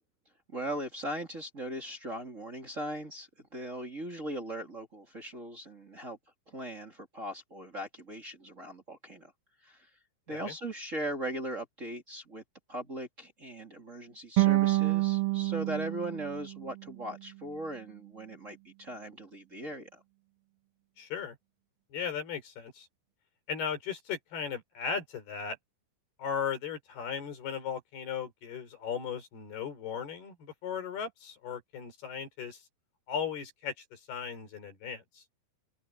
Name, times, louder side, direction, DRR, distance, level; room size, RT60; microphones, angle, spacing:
voice 1, 0.5-6.2 6.5-9.3 9.6-9.9 10.3-12.4 12.7-20.0, right 1 dB, 20° right, 2.6 m, -39 dB
sound 1, 14.4-17.5, right 21 dB, 70° right, 1.3 m, -28 dB
voice 2, 21.0-21.4 21.9-22.9 23.5-25.6 26.2-32.6 33.1-35.2, left 7 dB, 85° left, 6.6 m, -37 dB
open air
omnidirectional pair, 4.4 m